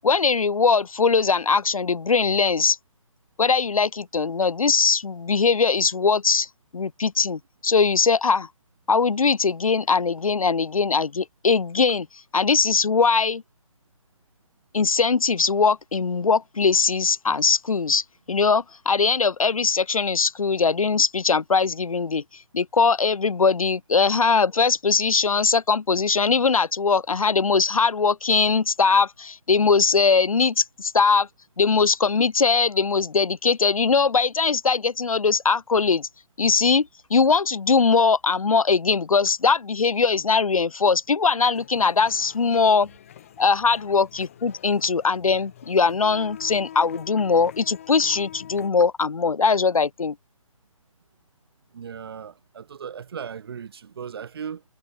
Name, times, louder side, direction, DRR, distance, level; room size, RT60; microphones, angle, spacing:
voice 1, 0.0-2.8 3.4-6.5 6.7-8.5 8.9-12.1 12.3-13.4 14.7-22.2 22.5-31.3 31.6-36.1 36.4-42.9 43.4-50.2, left 5 dB, 75° left, 0.6 m, -21 dB
sound 1, 41.5-48.7, left 10 dB, 25° left, 0.6 m, -45 dB
voice 2, 51.7-54.6, right 7 dB, 45° right, 2.2 m, -37 dB
figure-of-eight pair, 145°, 18 cm